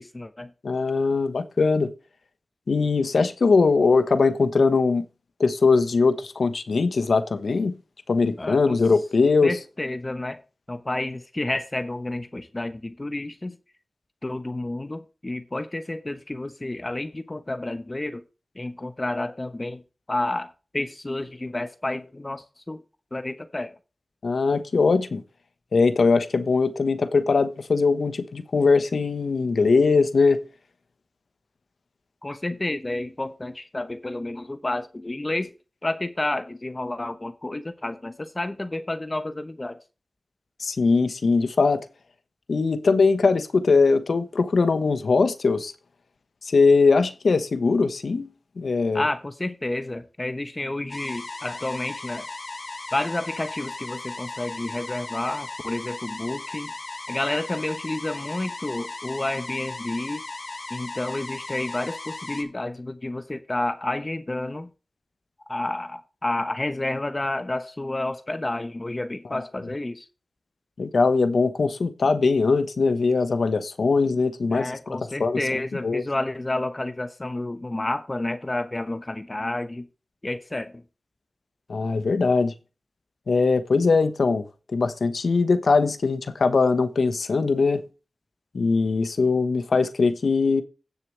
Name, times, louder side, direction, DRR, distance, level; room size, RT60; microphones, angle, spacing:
voice 1, 0.0-0.5 8.4-8.8 9.4-10.4 10.7-13.6 14.2-18.2 18.5-19.8 20.1-22.8 23.1-23.7 32.2-35.5 35.8-39.8 48.9-52.3 52.9-56.7 57.1-60.2 60.7-64.7 65.5-70.1 74.5-79.9 80.2-80.8, left 2 dB, 30° left, 0.9 m, -30 dB
voice 2, 0.6-1.9 2.7-5.0 5.4-7.8 8.1-9.6 24.2-25.2 25.7-30.4 40.6-41.8 42.5-45.7 46.4-48.3 48.6-49.0 70.8-76.0 81.7-82.5 83.3-84.4 84.7-87.8 88.5-90.6, left 4 dB, 80° left, 1.1 m, -21 dB
sound 1, 50.9-62.4, left 3 dB, 55° left, 2.1 m, -37 dB
16.0 x 6.8 x 3.2 m
wide cardioid pair, 55°, 0 cm